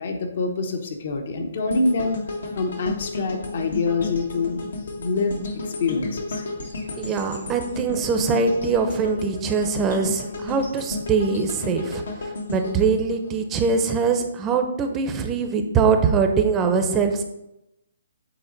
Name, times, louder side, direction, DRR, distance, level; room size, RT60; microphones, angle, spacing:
voice 1, 0.0-2.2 2.5-4.6 5.0-5.4 5.7-6.4, left 3 dB, 55° left, 5 dB, 1.1 m, -25 dB
sound 1, 1.7-13.9 14.3-14.5, left 2 dB, 75° left, 1.4 m, -33 dB
voice 2, 7.0-17.2, right 5 dB, 20° right, 6 dB, 0.7 m, -22 dB
8.1 x 4.0 x 3.9 m, 0.88 s
hypercardioid pair, 145°, 0 cm